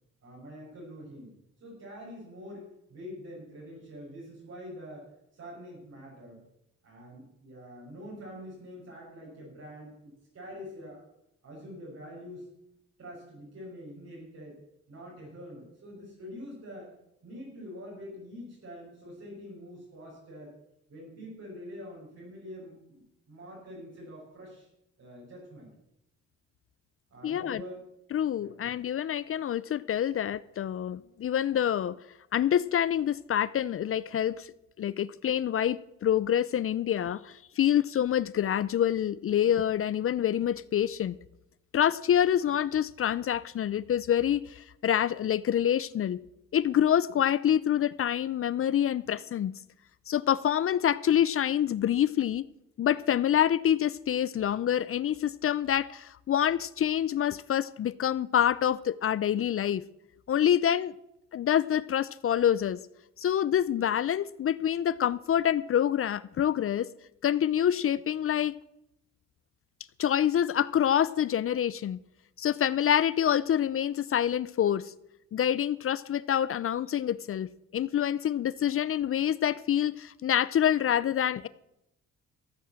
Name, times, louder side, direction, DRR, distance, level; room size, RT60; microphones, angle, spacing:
voice 1, 0.2-1.3 1.6-6.4 6.8-11.0 11.4-12.5 13.0-14.6 14.9-16.9 17.2-20.5 20.9-24.7 25.0-25.7 27.1-27.9 28.4-28.6, equal, 55° right, -5 dB, 6.5 m, -45 dB
voice 2, 27.2-27.6 28.1-32.0 32.3-34.5 34.8-41.1 41.7-46.2 46.5-49.5 50.1-52.4 52.8-59.8 60.3-60.9 61.3-62.8 63.2-66.9 67.2-68.5 70.0-72.0 72.4-74.9 75.3-81.5, left 10 dB, 45° left, 19 dB, 0.5 m, -26 dB
14.5 x 8.6 x 7.5 m, 0.83 s
cardioid pair, 90°, 30 cm